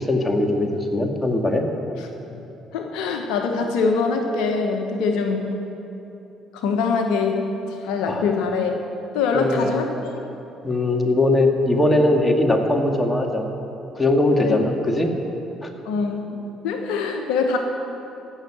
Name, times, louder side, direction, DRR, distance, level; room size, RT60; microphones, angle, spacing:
voice 1, 0.0-1.6 8.1-8.2 9.3-9.8 10.6-13.5 13.9-15.1 15.6-15.7, left 2 dB, 15° left, 3 dB, 2.0 m, -20 dB
voice 2, 2.7-5.5 6.5-8.7 9.1-9.9 14.4-14.6 15.8-17.6, left 4 dB, 75° left, 3 dB, 1.1 m, -23 dB
16.0 x 6.6 x 9.0 m, 2.9 s
hypercardioid pair, 55°, 0 cm